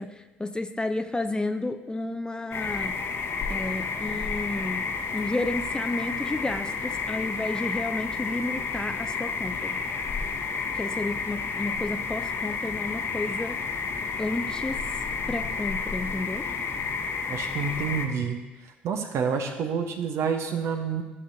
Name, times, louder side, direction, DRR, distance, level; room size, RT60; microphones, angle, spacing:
voice 1, 0.0-2.9 3.5-4.8 5.1-9.8 10.7-13.6 14.2-14.8 15.3-16.5, left 2 dB, 15° left, 9 dB, 0.6 m, -31 dB
sound 1, 2.5-18.1, left 5 dB, 50° left, 1.0 m, -31 dB
voice 2, 17.3-18.4 18.8-21.0, right 6 dB, 55° right, 5 dB, 1.0 m, -28 dB
14.5 x 6.4 x 2.8 m, 1.1 s
figure-of-eight pair, 50°, 6 cm